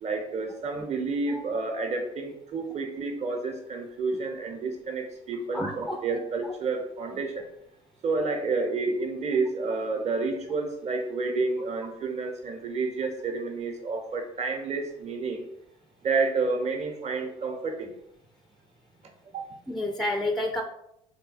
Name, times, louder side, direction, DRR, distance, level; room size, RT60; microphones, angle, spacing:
voice 1, 0.0-7.4 8.0-15.5 16.0-17.9 19.3-19.4, right 3 dB, 40° right, 4 dB, 0.9 m, -30 dB
voice 2, 5.5-6.0 19.7-20.6, left 1 dB, ahead, 3 dB, 0.4 m, -29 dB
3.6 x 2.3 x 4.1 m, 0.78 s
supercardioid pair, 90°, 17 cm